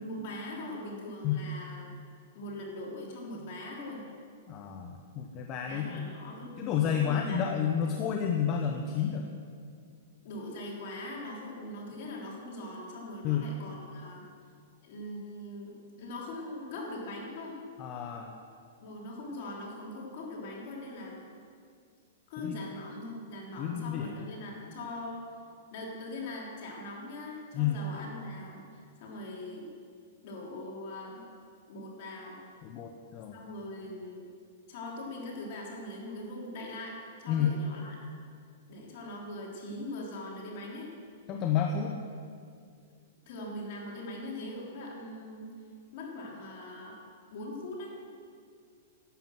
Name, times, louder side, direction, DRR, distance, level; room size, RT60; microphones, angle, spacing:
voice 1, 0.0-1.9 2.3-4.0 5.7-7.9 10.2-14.2 14.8-17.6 18.8-21.2 22.3-25.2 25.7-29.7 30.2-31.2 31.7-32.4 33.3-34.3 34.7-38.0 38.7-40.9 43.3-45.5 45.9-47.0 47.3-48.1, left 1 dB, 55° left, -2 dB, 3.6 m, -41 dB
voice 2, 4.5-6.0 6.6-9.2 13.2-13.4 17.8-18.3 22.4-22.6 23.6-24.2 27.5-27.8 32.6-33.4 37.3-37.5 41.3-41.9, left 8 dB, 35° left, 3 dB, 1.0 m, -30 dB
11.5 x 8.9 x 7.8 m, 2.2 s
hypercardioid pair, 145°, 0 cm